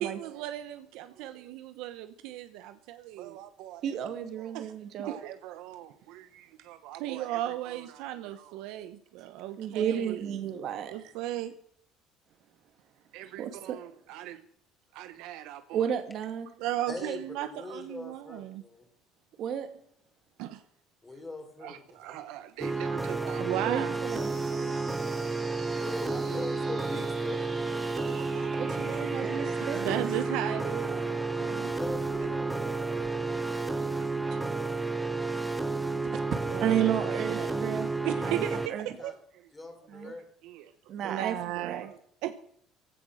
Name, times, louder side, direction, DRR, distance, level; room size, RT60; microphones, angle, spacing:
voice 1, 0.0-4.0 4.4-4.7 5.0-10.5 10.9-11.5 13.1-14.4 14.9-15.9 16.6-18.6 20.4-20.6 21.6-24.0 24.5-24.8 25.4-25.6 26.9-27.0 28.0-31.7 32.9-33.0 36.5-36.8 37.3-37.6 38.0-39.1 40.0-40.1 40.4-40.7 41.0-42.3, right 13 dB, 80° right, 10 dB, 1.0 m, -37 dB
voice 2, 3.8-5.2 9.6-10.9 13.4-13.8 15.7-16.5 19.4-19.7 23.6-24.3 28.6-30.1 33.6-34.4 36.0-37.9 38.2-38.9 39.9-40.1 40.9-41.9, right 9 dB, 50° right, 7 dB, 2.2 m, -33 dB
voice 3, 16.9-17.2 17.5-18.9 21.0-22.2 25.7-28.2 31.7-34.0 38.4-38.6 39.0-39.1 39.5-40.2, left 2 dB, 10° left, 5 dB, 3.6 m, -42 dB
sound 1, 22.6-38.7, right 3 dB, 5° right, 1.0 m, -31 dB
sound 2, 24.1-35.1, right 4 dB, 25° right, 2.9 m, -48 dB
16.0 x 13.0 x 6.4 m, 0.65 s
cardioid pair, 150°, 0 cm